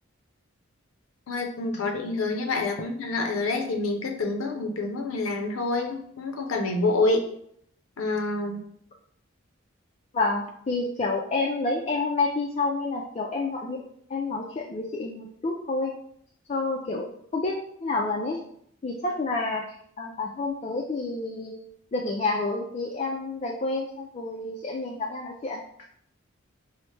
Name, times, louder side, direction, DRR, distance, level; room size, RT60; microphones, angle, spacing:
voice 1, 1.3-7.3 8.0-8.6, left 2 dB, 85° left, 4 dB, 0.5 m, -27 dB
voice 2, 10.1-13.8 14.1-15.9 16.5-17.6 17.8-18.4 18.8-19.7 20.0-21.6 21.9-25.6, left 3 dB, 30° left, -1 dB, 0.3 m, -29 dB
4.2 x 2.0 x 3.1 m, 0.67 s
head